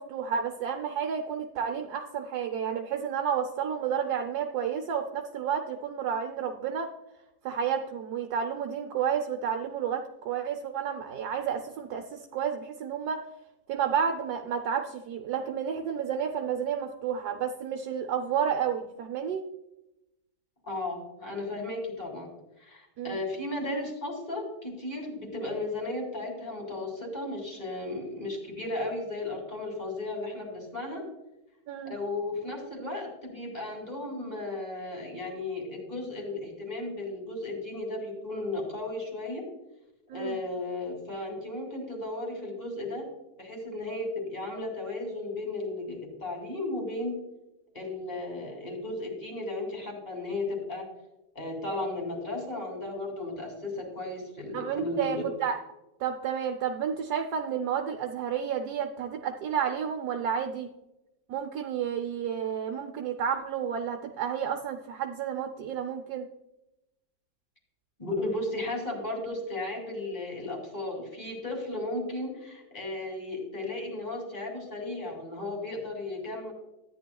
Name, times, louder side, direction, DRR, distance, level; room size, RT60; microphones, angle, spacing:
voice 1, 0.0-6.9 7.4-13.2 13.7-19.5 23.0-23.2 31.7-31.9 40.1-40.4 54.5-55.6 56.0-60.7 61.3-66.3, right 8 dB, 70° right, 4 dB, 1.2 m, -31 dB
voice 2, 20.7-22.3 22.6-31.0 31.8-39.4 40.1-43.0 43.4-47.1 47.7-50.8 51.3-55.2 68.0-76.5, left 2 dB, 25° left, -1 dB, 3.0 m, -35 dB
13.5 x 9.7 x 2.3 m, 0.93 s
omnidirectional pair, 1.8 m